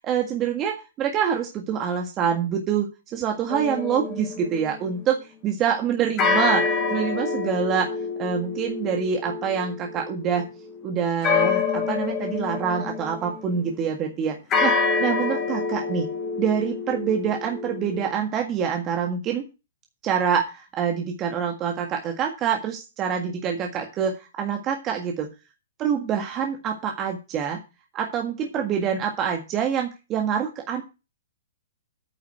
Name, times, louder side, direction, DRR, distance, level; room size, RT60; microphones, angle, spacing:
voice 1, 0.0-5.2 5.4-6.6 6.9-7.9 8.2-10.4 10.8-14.7 15.0-16.0 16.4-19.4 20.0-25.3 25.8-27.6 27.9-30.8, right 7 dB, 30° right, 2 dB, 1.7 m, -26 dB
sound 1, 3.5-5.0 6.2-13.7 14.5-18.1, left 4 dB, 25° left, 2.8 m, -27 dB
9.2 x 5.6 x 7.8 m, 0.29 s
hypercardioid pair, 130°, 0 cm